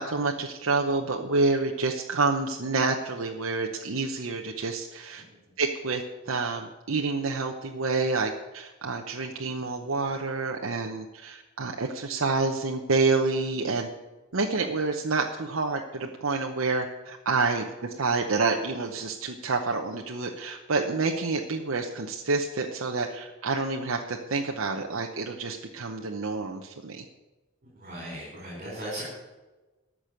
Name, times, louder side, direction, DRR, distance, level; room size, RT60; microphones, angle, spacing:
voice 1, 0.0-5.2 5.6-13.9 14.3-27.0, right 3 dB, 75° right, 2 dB, 0.9 m, -28 dB
voice 2, 27.6-29.1, right 1 dB, 40° right, -4 dB, 4.5 m, -37 dB
13.5 x 6.3 x 8.9 m, 1.2 s
head